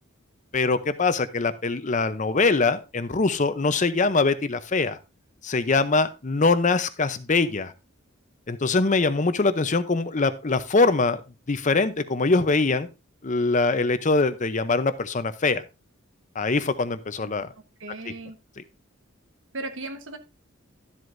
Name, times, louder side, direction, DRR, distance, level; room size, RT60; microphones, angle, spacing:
voice 1, 0.5-5.0 5.4-7.7 8.5-11.2 11.5-12.9 13.2-15.6 16.4-17.5, left 3 dB, 35° left, 0.7 m, -23 dB
voice 2, 17.2-18.4 19.5-20.2, right 2 dB, 60° right, 1.2 m, -37 dB
12.5 x 7.8 x 2.6 m
head